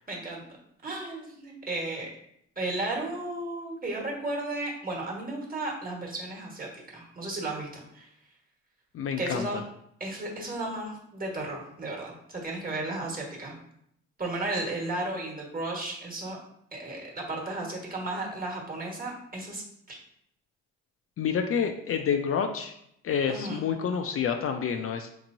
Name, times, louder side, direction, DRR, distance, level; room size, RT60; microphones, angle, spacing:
voice 1, 0.1-0.4 0.8-2.1 2.6-8.1 9.2-9.6 10.0-13.6 14.2-16.4 16.7-20.0 23.3-23.6, right 2 dB, 30° right, -1 dB, 1.3 m, -34 dB
voice 2, 8.9-9.5 21.2-22.7 23.0-25.1, left 7 dB, 50° left, 6 dB, 0.4 m, -28 dB
4.4 x 3.0 x 2.6 m, 0.73 s
cardioid pair, 90°, 30 cm